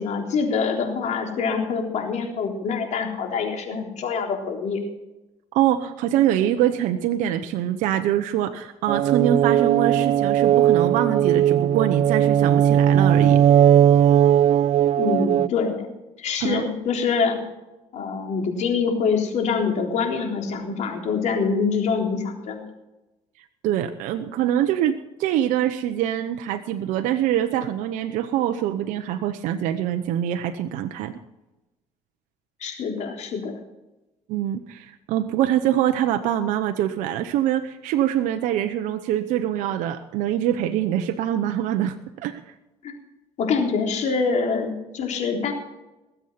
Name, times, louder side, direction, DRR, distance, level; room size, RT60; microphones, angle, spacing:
voice 1, 0.0-4.8 14.9-15.9 16.2-17.4 17.9-22.7 32.6-33.5 42.8-42.9 43.4-45.5, left 5 dB, 65° left, 2 dB, 3.7 m, -25 dB
voice 2, 5.5-13.4 16.4-16.6 23.6-31.2 34.3-42.4, right 11 dB, 80° right, 8 dB, 0.9 m, -24 dB
sound 1, 8.9-15.5, right 10 dB, 55° right, 0.5 m, -18 dB
20.5 x 8.1 x 5.8 m, 0.98 s
supercardioid pair, 75°, 13 cm